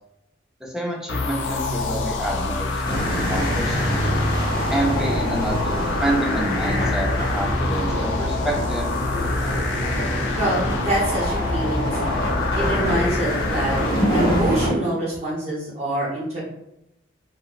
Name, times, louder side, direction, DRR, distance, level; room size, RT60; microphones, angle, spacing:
voice 1, 0.6-4.0 4.7-8.9, right 1 dB, 5° right, -3 dB, 0.5 m, -28 dB
sound 1, 1.1-14.6, left 3 dB, 90° left, 0.4 m, -27 dB
sound 2, 2.8-14.7, equal, 30° left, 1.4 m, -25 dB
voice 2, 10.4-12.3 12.5-16.4, right 1 dB, 35° right, -7 dB, 0.8 m, -26 dB
2.7 x 2.0 x 2.3 m, 0.85 s
head